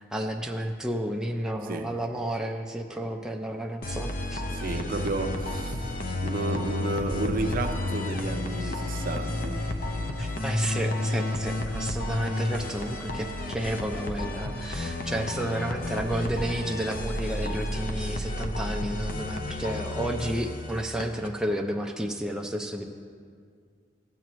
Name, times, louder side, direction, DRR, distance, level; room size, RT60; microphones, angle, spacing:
voice 1, 0.0-4.4 8.6-8.7 10.2-22.9, right 1 dB, 5° right, 0.4 m, -31 dB
voice 2, 1.7-2.0 4.5-6.0 6.2-9.7 10.0-10.1, right 2 dB, 50° right, 0.6 m, -32 dB
sound 1, 3.8-21.3, left 1 dB, 50° left, 0.6 m, -31 dB
15.0 x 7.5 x 3.1 m
head